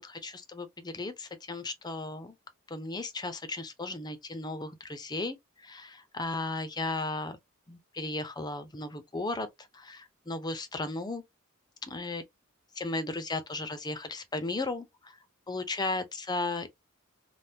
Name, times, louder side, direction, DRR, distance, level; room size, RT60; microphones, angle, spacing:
voice 1, 0.0-2.4 2.7-7.4 7.7-9.5 9.7-11.2 11.9-12.2 12.8-15.2 15.5-16.8, left 2 dB, 20° left, 0.5 m, -35 dB
3.4 x 2.1 x 2.7 m
head